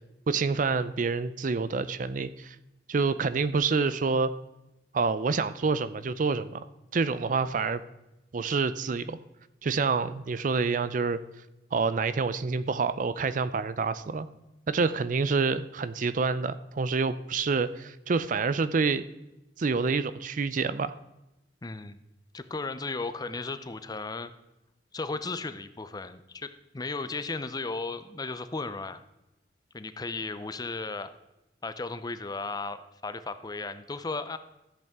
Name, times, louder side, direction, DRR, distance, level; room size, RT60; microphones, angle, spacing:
voice 1, 0.3-2.6 2.9-4.3 4.9-6.7 6.9-7.8 8.3-9.2 9.6-11.2 11.7-14.3 14.7-19.0 19.6-20.9, right 4 dB, 45° right, 14 dB, 0.4 m, -27 dB
voice 2, 21.6-22.0 22.3-24.3 24.9-29.0 29.7-31.1 31.6-34.4, left 3 dB, 20° left, 12 dB, 0.5 m, -35 dB
13.5 x 8.0 x 3.6 m, 0.96 s
head